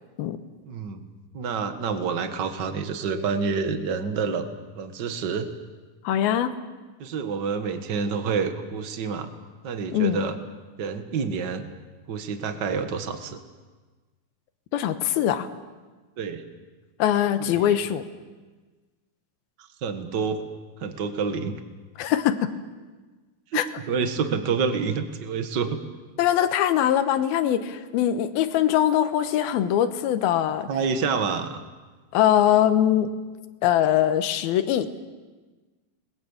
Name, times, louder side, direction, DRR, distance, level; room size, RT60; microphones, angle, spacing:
voice 1, 0.7-1.0 1.3-4.5 4.7-5.5 7.0-9.3 9.6-10.4 10.8-11.7 12.1-13.4 16.2-16.4 17.4-17.8 19.8-20.4 20.8-21.6 23.5-25.8 30.7-31.6, right 5 dB, 55° right, 7 dB, 1.2 m, -28 dB
voice 2, 6.0-6.5 9.9-10.3 14.7-15.5 17.0-18.0 22.0-22.5 23.5-23.6 26.2-30.7 32.1-33.1 33.6-34.9, left 11 dB, 80° left, 10 dB, 3.0 m, -22 dB
29.5 x 21.0 x 7.2 m, 1.3 s
omnidirectional pair, 4.3 m